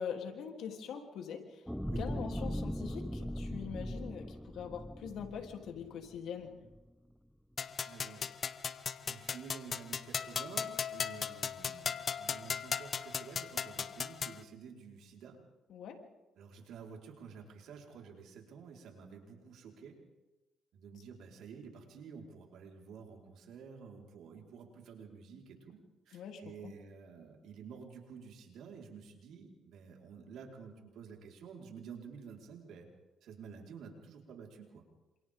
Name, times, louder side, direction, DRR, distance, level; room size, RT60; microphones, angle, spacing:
voice 1, 0.0-1.6 2.0-6.5 15.7-16.0 26.1-26.7, left 7 dB, 80° left, 3 dB, 3.4 m, -43 dB
sound 1, 1.7-6.2 6.7-6.8, equal, ahead, 0.8 m, -39 dB
sound 2, 7.6-14.4, left 6 dB, 50° left, 1.0 m, -37 dB
voice 2, 7.9-8.3 9.0-15.4 16.4-20.0 20.7-25.8 26.1-32.9 33.2-34.8, right 6 dB, 80° right, 0 dB, 4.8 m, -51 dB
28.0 x 27.5 x 3.8 m, 1.1 s
cardioid pair, 90°, 0 cm